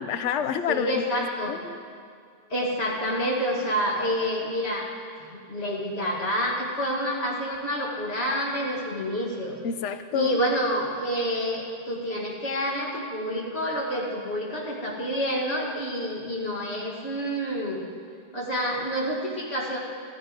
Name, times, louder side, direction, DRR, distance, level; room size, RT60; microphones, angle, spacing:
voice 1, 0.1-1.7 9.6-10.4, left 8 dB, 75° left, 10 dB, 1.0 m, -29 dB
voice 2, 0.7-1.6 2.5-4.9 5.2-9.6 10.1-17.8 18.3-19.8, equal, 60° left, -4 dB, 2.2 m, -28 dB
15.0 x 14.0 x 5.1 m, 2.2 s
omnidirectional pair, 1.2 m